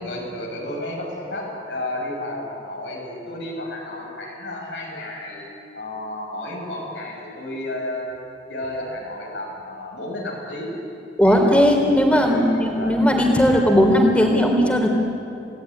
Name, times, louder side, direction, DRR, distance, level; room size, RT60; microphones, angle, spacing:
voice 1, 0.0-5.4 5.7-8.2 8.5-10.7 11.2-11.4 12.2-13.0, left 1 dB, 85° left, -2 dB, 6.8 m, -32 dB
voice 2, 11.2-14.9, equal, 5° left, 2 dB, 3.7 m, -17 dB
29.0 x 18.5 x 10.0 m, 2.7 s
head